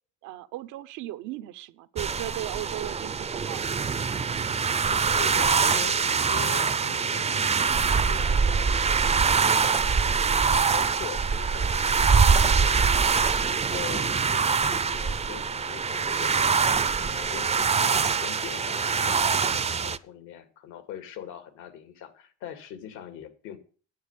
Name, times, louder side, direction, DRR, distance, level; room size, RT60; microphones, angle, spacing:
voice 1, 0.2-3.8, right 15 dB, 75° right, 0.9 m, -37 dB
sound 1, 2.0-20.0, right 5 dB, 20° right, 0.6 m, -24 dB
voice 2, 5.1-8.8 9.1-10.5 10.7-23.6, left 9 dB, 80° left, 2.5 m, -42 dB
9.5 x 8.2 x 8.3 m
supercardioid pair, 90°, 31 cm